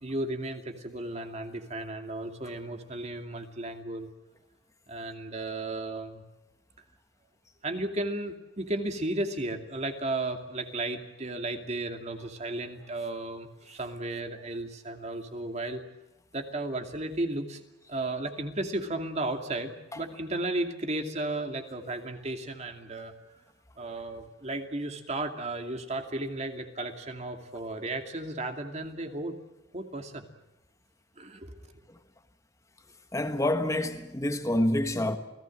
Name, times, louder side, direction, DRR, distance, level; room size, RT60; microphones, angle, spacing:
voice 1, 0.0-4.1 4.9-6.2 7.6-15.8 16.3-17.6 17.9-23.1 23.8-29.3 29.7-30.3 31.2-31.7, right 2 dB, 35° right, 2.6 m, -34 dB
voice 2, 33.1-35.2, left 1 dB, 15° left, 1.3 m, -27 dB
28.5 x 18.0 x 7.6 m
head